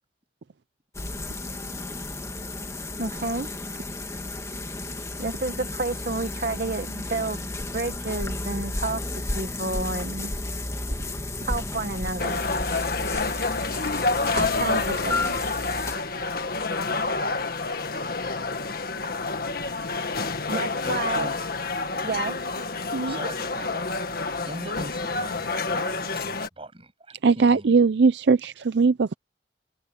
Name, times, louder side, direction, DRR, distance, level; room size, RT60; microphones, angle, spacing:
sound 1, 0.9-16.0, left 2 dB, 15° left, 1.6 m, -33 dB
voice 1, 3.0-3.5 5.2-10.3 11.4-12.5 14.3-15.4 20.5-21.3 22.0-22.5 22.9-23.2, right 2 dB, 55° right, 1.4 m, -30 dB
sound 2, 12.2-26.5, left 3 dB, 55° left, 1.8 m, -28 dB
voice 2, 19.9-21.4 23.1-27.8, right 2 dB, 30° right, 7.8 m, -42 dB
voice 3, 27.2-29.1, right 4 dB, 75° right, 0.5 m, -19 dB
head